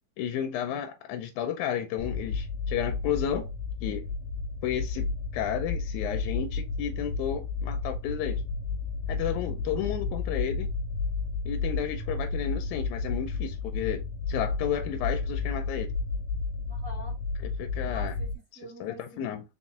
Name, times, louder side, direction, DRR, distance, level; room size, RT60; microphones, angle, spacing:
voice 1, 0.2-3.5 3.8-4.1 4.6-8.4 9.1-10.7 11.5-15.9 17.6-18.1 18.8-19.4, left 9 dB, 90° left, 2.0 m, -32 dB
sound 1, 2.0-18.4, left 4 dB, 65° left, 2.0 m, -32 dB
voice 2, 16.7-17.2 17.8-19.4, equal, 30° right, 1.7 m, -46 dB
5.2 x 4.2 x 2.4 m
omnidirectional pair, 3.4 m